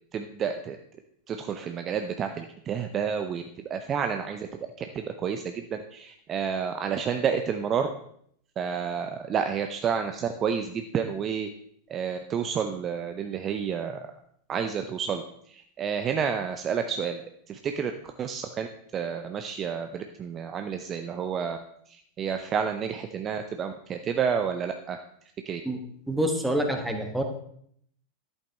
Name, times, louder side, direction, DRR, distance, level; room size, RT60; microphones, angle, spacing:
voice 1, 0.1-0.8 1.3-3.4 3.7-4.5 4.8-7.9 8.6-11.5 11.9-14.0 14.5-15.2 15.5-17.2 17.5-18.7 18.9-21.6 21.9-25.0 25.5-25.6, right 7 dB, 25° right, 7 dB, 0.6 m, -30 dB
voice 2, 26.1-27.2, right 1 dB, 5° right, 4 dB, 1.3 m, -26 dB
11.5 x 8.2 x 3.4 m, 0.66 s
figure-of-eight pair, 90°, 0 cm